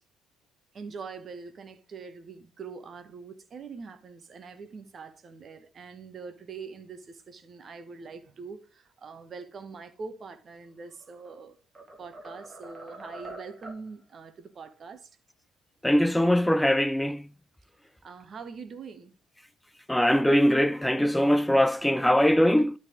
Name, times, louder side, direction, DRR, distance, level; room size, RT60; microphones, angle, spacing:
voice 1, 0.7-11.5 12.0-15.1 18.0-19.1, right 5 dB, 40° right, 1.3 m, -43 dB
sound 1, 10.9-11.4 11.7-13.9, right 1 dB, 20° right, 2.2 m, -44 dB
voice 2, 15.8-17.2 19.9-22.7, equal, 5° left, 0.4 m, -22 dB
12.0 x 4.1 x 5.0 m
figure-of-eight pair, 50°, 0 cm